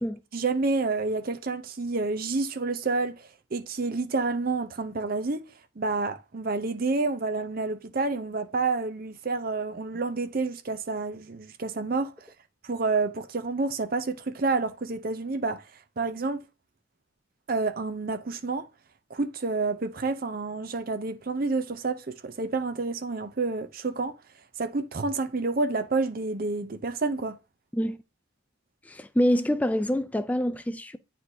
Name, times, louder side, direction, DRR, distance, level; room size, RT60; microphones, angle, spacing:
voice 1, 0.3-5.4 5.8-12.1 12.6-15.6 16.0-16.4 17.5-18.7 19.1-24.1 24.6-27.4, right 3 dB, 45° right, 0.6 m, -29 dB
voice 2, 28.9-31.0, equal, 5° left, 0.3 m, -26 dB
9.4 x 4.2 x 2.7 m
head